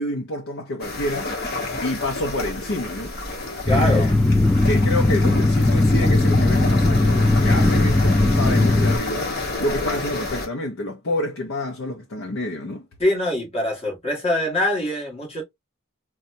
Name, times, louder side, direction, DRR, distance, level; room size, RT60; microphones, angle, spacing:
voice 1, 0.0-1.3 1.8-3.1 3.7-4.2 4.6-9.3 9.6-12.9, left 1 dB, 75° left, 0.7 m, -28 dB
sound 1, 0.8-10.5, left 2 dB, 50° left, 1.2 m, -30 dB
sound 2, 2.2-2.8 3.8-4.4 6.8-8.3, equal, 55° right, 0.6 m, -35 dB
voice 2, 3.7-4.2 13.0-15.4, left 1 dB, 30° left, 1.7 m, -23 dB
sound 3, 3.7-9.0, left 2 dB, 5° left, 0.4 m, -18 dB
4.1 x 2.3 x 2.6 m
head